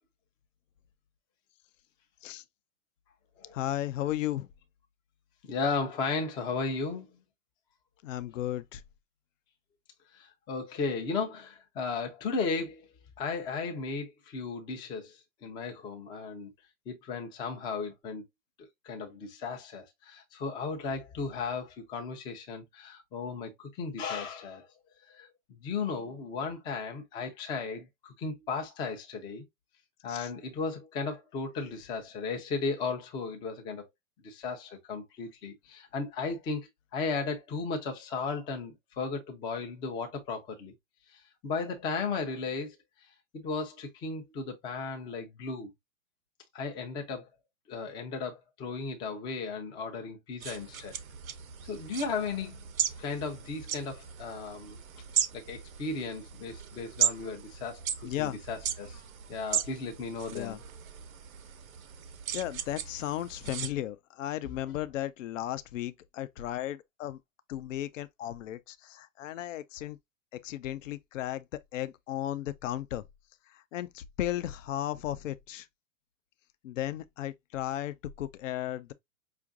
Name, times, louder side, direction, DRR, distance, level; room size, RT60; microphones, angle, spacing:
voice 1, 3.5-4.5 8.0-8.8 30.1-30.3 58.0-58.4 60.3-60.6 62.3-67.2 67.5-70.0 70.4-73.0 73.5-75.7 76.6-78.9, left 13 dB, 65° left, 0.6 m, -35 dB
voice 2, 5.4-7.1 10.1-12.9 13.2-16.5 16.9-18.2 18.8-24.7 25.1-29.4 30.0-33.8 34.2-36.6 36.9-40.7 41.1-42.8 43.3-45.7 46.5-47.3 47.7-51.0 51.7-52.6 53.0-54.8 55.3-59.0 59.3-60.6, left 4 dB, 10° left, 0.4 m, -35 dB
sound 1, 50.4-63.7, right 8 dB, 80° right, 0.7 m, -36 dB
4.9 x 2.5 x 2.4 m
hypercardioid pair, 120°, 42 cm